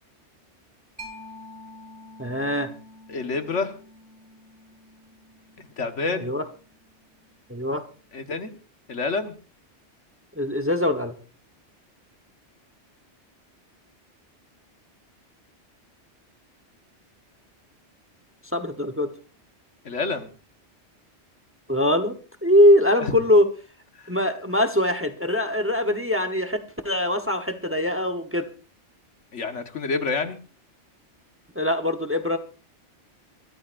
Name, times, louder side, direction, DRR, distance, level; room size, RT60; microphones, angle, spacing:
Mallet percussion, 1.0-8.3, left 1 dB, 25° left, 3.8 m, -48 dB
voice 1, 2.2-2.7 6.2-6.4 7.5-7.8 10.4-11.1 18.5-19.1 21.7-22.1 22.4-23.5 24.1-26.6 26.8-28.5 31.6-32.4, left 1 dB, 10° right, 6 dB, 0.9 m, -22 dB
voice 2, 3.1-3.7 5.6-6.3 8.1-8.5 8.9-9.3 19.8-20.3 23.0-23.1 29.3-30.4, left 4 dB, 85° left, 7 dB, 1.7 m, -28 dB
24.0 x 13.5 x 2.5 m, 0.37 s
omnidirectional pair, 1.2 m